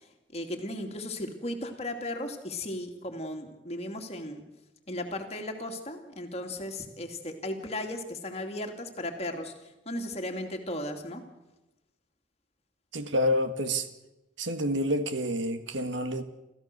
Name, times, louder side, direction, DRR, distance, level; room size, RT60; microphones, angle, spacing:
voice 1, 0.0-4.4 4.9-11.2, left 1 dB, 35° left, 2.5 m, -36 dB
voice 2, 12.9-13.9 14.4-16.2, equal, 80° right, 1.7 m, -28 dB
29.5 x 14.5 x 6.7 m
head